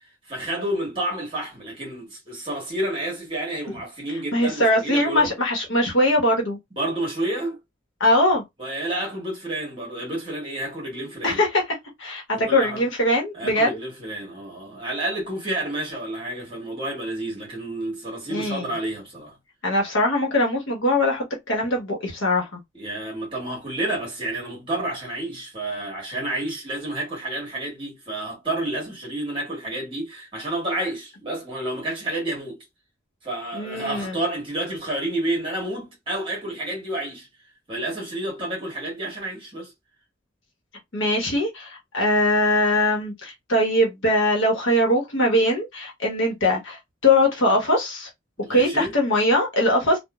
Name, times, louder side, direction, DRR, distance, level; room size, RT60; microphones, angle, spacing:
voice 1, 0.3-5.3 6.8-7.6 8.6-11.4 12.3-12.8 13.3-19.3 22.7-32.6 33.2-37.3 37.7-39.7 48.4-48.9, right 1 dB, 25° right, 1.4 m, -30 dB
voice 2, 4.3-6.6 8.0-8.4 11.2-11.6 12.0-13.8 18.3-18.8 19.6-22.6 33.5-34.1 40.9-48.1 48.5-50.0, left 1 dB, 75° left, 1.0 m, -21 dB
3.0 x 2.2 x 2.3 m
head